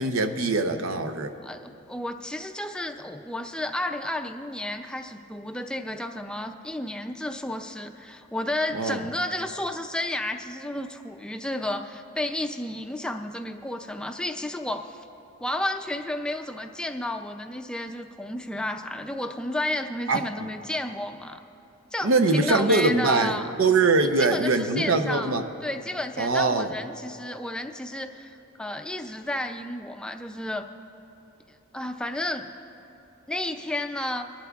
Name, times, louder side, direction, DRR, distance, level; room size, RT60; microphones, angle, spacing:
voice 1, 0.0-1.3 8.7-9.0 20.1-20.2 22.0-25.4 26.2-26.7, right 3 dB, 90° right, 7 dB, 0.7 m, -22 dB
voice 2, 1.4-15.0 15.4-21.4 21.9-23.5 24.2-25.4 25.6-30.7 31.7-32.5 33.3-34.3, left 1 dB, 5° left, 5 dB, 0.4 m, -32 dB
23.5 x 11.5 x 2.4 m, 2.9 s
head